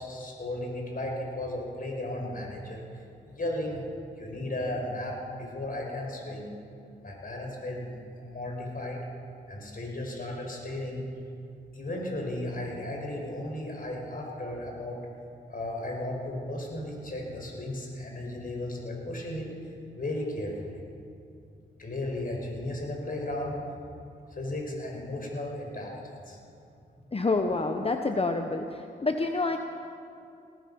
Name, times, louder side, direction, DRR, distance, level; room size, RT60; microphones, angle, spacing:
voice 1, 0.0-3.8 4.2-6.5 7.0-9.0 9.5-11.1 11.7-15.0 15.5-19.5 19.9-20.8 21.8-23.6 24.3-26.4, left 1 dB, 50° left, 0 dB, 5.1 m, -35 dB
voice 2, 27.1-29.6, left 3 dB, 30° left, 5 dB, 1.0 m, -28 dB
18.5 x 14.0 x 5.5 m, 2.6 s
cardioid pair, 50°, 19 cm